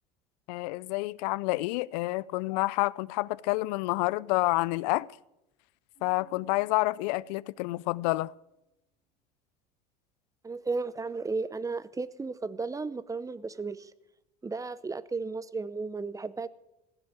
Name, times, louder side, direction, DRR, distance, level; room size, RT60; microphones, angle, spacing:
voice 1, 0.5-5.1 6.0-8.3, left 21 dB, 75° left, 0.4 m, -28 dB
Keyboard (musical), 5.9-8.6, right 10 dB, 45° right, 3.7 m, -64 dB
voice 2, 10.4-13.9 14.4-16.5, right 4 dB, 15° right, 0.6 m, -34 dB
15.0 x 6.9 x 9.0 m
supercardioid pair, 90°, 21 cm